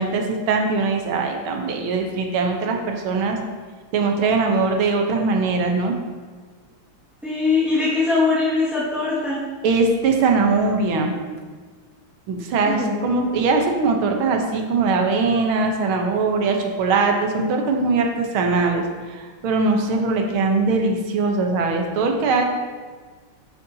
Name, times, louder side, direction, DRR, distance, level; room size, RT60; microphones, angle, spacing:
voice 1, 0.0-3.4 3.9-6.0 9.6-11.1 12.3-18.8 19.1-22.4, right 3 dB, 80° right, 3 dB, 1.8 m, -21 dB
voice 2, 7.2-9.4 12.6-13.3, left 3 dB, ahead, -11 dB, 1.6 m, -22 dB
11.5 x 6.6 x 2.8 m, 1.4 s
omnidirectional pair, 2.3 m